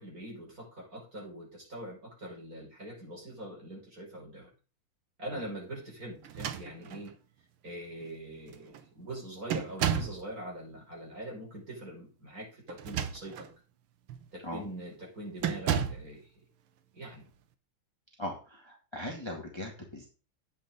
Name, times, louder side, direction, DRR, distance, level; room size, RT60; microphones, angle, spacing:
voice 1, 0.0-4.5 5.2-7.1 7.6-13.5 14.3-16.4 16.9-17.2, right 1 dB, 40° right, -2 dB, 6.2 m, -43 dB
sound 1, 6.2-7.1 8.0-8.1 8.5-8.8 9.5-10.2 12.7-13.5 14.1-14.3 15.4-16.1, right 8 dB, 85° right, 1.8 m, -33 dB
voice 2, 18.2-20.1, left 1 dB, 15° left, 0 dB, 2.0 m, -39 dB
11.5 x 8.9 x 3.9 m, 0.34 s
omnidirectional pair, 2.3 m